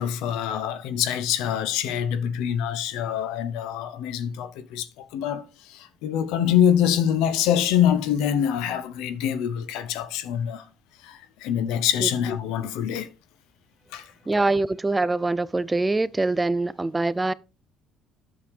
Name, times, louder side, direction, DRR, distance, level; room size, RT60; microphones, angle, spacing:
voice 1, 0.0-10.6 11.0-13.1 13.9-14.1, left 9 dB, 85° left, 0.7 m, -25 dB
voice 2, 14.3-17.3, right 2 dB, 20° right, 0.4 m, -24 dB
8.7 x 6.7 x 3.3 m
supercardioid pair, 75°, 0 cm